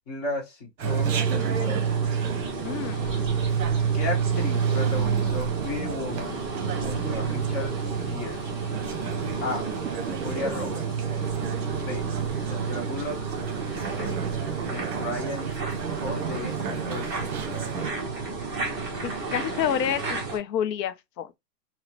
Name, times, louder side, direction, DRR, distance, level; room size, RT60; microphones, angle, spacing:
voice 1, 0.0-2.1 3.9-6.4 6.8-8.4 9.4-9.6 10.2-11.1 11.7-12.0 12.4-13.3 13.8-14.2 14.6-15.5 16.0-17.7, left 2 dB, 25° left, 0.9 m, -35 dB
sound 1, 0.8-20.4, right 6 dB, 20° right, 0.6 m, -29 dB
Chatter, 0.8-17.9, right 7 dB, 60° right, 0.8 m, -36 dB
voice 2, 2.6-3.2 19.0-21.4, left 9 dB, 75° left, 0.6 m, -29 dB
3.1 x 2.0 x 2.4 m
hypercardioid pair, 155°, 50 cm